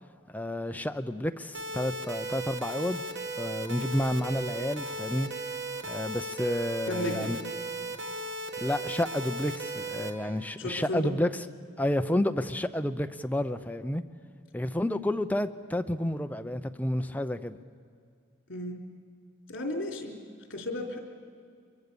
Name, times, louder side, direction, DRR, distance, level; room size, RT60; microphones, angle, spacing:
voice 1, 0.3-3.0 3.4-5.3 5.9-7.4 8.6-11.5 11.8-14.0 14.5-17.6, left 1 dB, 10° left, 9 dB, 0.6 m, -30 dB
sound 1, 1.5-10.1, right 2 dB, 60° right, 1.7 m, -36 dB
voice 2, 6.9-7.3 10.6-11.1 18.5-18.8 19.5-20.2 20.5-21.0, left 1 dB, 65° left, 1 dB, 3.6 m, -33 dB
24.5 x 23.0 x 6.9 m, 2.3 s
head